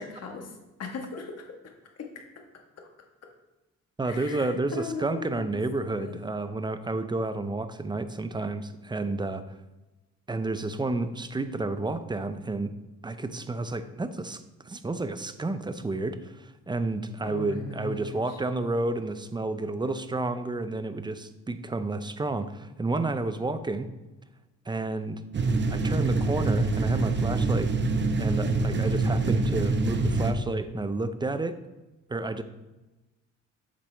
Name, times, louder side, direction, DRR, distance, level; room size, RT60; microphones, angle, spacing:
voice 1, 0.0-1.7 2.0-2.2 4.0-5.6 5.9-6.2 17.2-18.4, left 3 dB, 55° left, 3 dB, 1.5 m, -38 dB
voice 2, 4.0-9.4 10.3-12.7 13.0-23.9 24.7-25.2 25.7-27.7 28.2-31.6 32.1-32.4, right 2 dB, 15° right, 11 dB, 0.5 m, -31 dB
sound 1, 25.3-30.3, right 3 dB, 35° right, 0.9 m, -25 dB
8.2 x 5.9 x 3.4 m, 1.1 s
cardioid pair, 90°, 30 cm